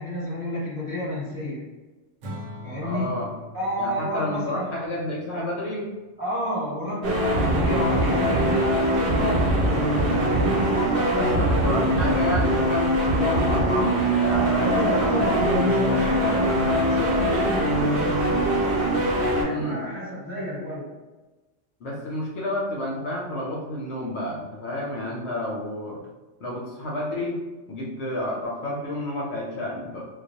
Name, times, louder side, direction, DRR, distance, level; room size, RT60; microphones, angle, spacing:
voice 1, 0.0-1.6 2.6-3.2 3.5-4.7 6.2-9.5 10.3-12.2 14.6-18.6 19.4-20.9, equal, 10° right, -10 dB, 1.0 m, -30 dB
Acoustic guitar / Strum, 2.2-5.6, left 1 dB, 80° right, 0.9 m, -42 dB
voice 2, 2.8-3.3 3.8-5.9 11.1-15.3 19.4-19.8 21.8-26.1 26.4-27.4 27.7-30.1, left 1 dB, 70° left, -3 dB, 0.8 m, -30 dB
sound 1, 7.0-19.4, right 1 dB, 60° right, 0.7 m, -22 dB
2.3 x 2.2 x 2.6 m, 1.2 s
omnidirectional pair, 1.3 m